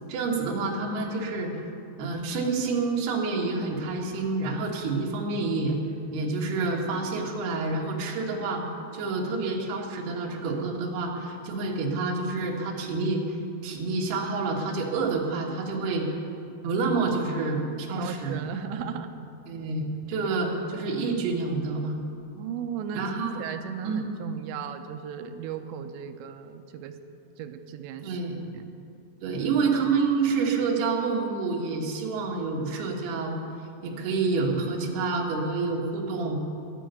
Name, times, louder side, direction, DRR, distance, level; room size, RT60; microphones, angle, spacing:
voice 1, 0.1-1.5 2.0-5.8 6.1-8.6 8.9-13.4 13.6-16.1 16.6-18.4 18.7-18.8 19.5-22.0 23.0-23.4 23.8-24.1 28.0-28.5 29.2-33.4 33.8-36.4, right 3 dB, 65° right, 0 dB, 3.3 m, -28 dB
voice 2, 17.9-19.1 22.4-27.0 27.4-28.2 28.5-28.7, right 8 dB, 80° right, 8 dB, 2.7 m, -36 dB
11.0 x 11.0 x 9.2 m, 2.6 s
omnidirectional pair, 5.5 m